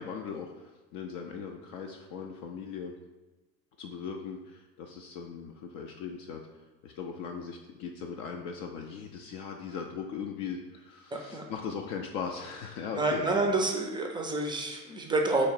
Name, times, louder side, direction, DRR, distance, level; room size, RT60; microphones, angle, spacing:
voice 1, 0.0-2.9 3.8-6.4 6.8-13.3, left 6 dB, 45° left, 2 dB, 0.5 m, -39 dB
voice 2, 11.1-11.4 12.9-15.5, right 2 dB, 10° right, 2 dB, 0.4 m, -28 dB
3.1 x 2.9 x 4.5 m, 1.1 s
figure-of-eight pair, 70°, 49 cm